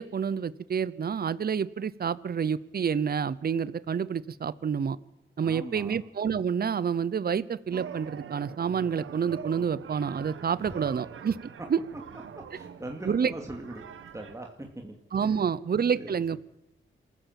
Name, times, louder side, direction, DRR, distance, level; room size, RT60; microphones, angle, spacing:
voice 1, 0.0-5.0 5.4-11.4 11.7-11.8 13.1-13.3 15.1-16.4, right 7 dB, 50° right, 18 dB, 0.8 m, -28 dB
voice 2, 5.4-6.0 10.6-10.7 12.5-15.5 15.9-16.4, right 1 dB, 15° right, 2 dB, 2.7 m, -42 dB
sound 1, 7.7-14.4, right 7 dB, 80° right, 1.3 m, -44 dB
27.0 x 15.0 x 7.6 m, 0.92 s
cardioid pair, 75°, 21 cm